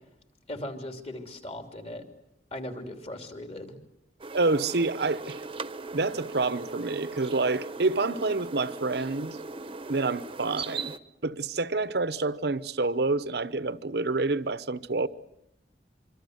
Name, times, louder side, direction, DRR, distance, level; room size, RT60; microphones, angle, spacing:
voice 1, 0.5-2.0 2.5-3.7, left 1 dB, 35° left, 3.1 m, -38 dB
sound 1, 4.2-11.0, right 3 dB, 30° right, 1.0 m, -39 dB
voice 2, 4.3-5.4 5.9-9.4 9.9-10.9 11.2-15.1, right 3 dB, 65° right, 0.9 m, -28 dB
25.5 x 25.5 x 7.9 m
head